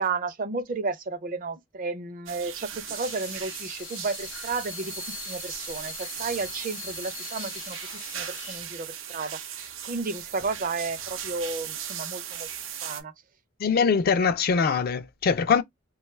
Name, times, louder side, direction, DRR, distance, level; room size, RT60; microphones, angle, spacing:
voice 1, 0.0-4.9 5.3-7.8 8.1-12.5 12.8-13.1, right 4 dB, 45° right, 0.5 m, -32 dB
sound 1, 2.3-13.0, right 9 dB, 90° right, 0.6 m, -38 dB
Water tap faucet / Sink (filling or washing), 2.6-10.6, left 9 dB, 90° left, 0.7 m, -43 dB
voice 2, 13.6-15.6, left 5 dB, 50° left, 0.4 m, -22 dB
3.0 x 2.3 x 3.0 m
head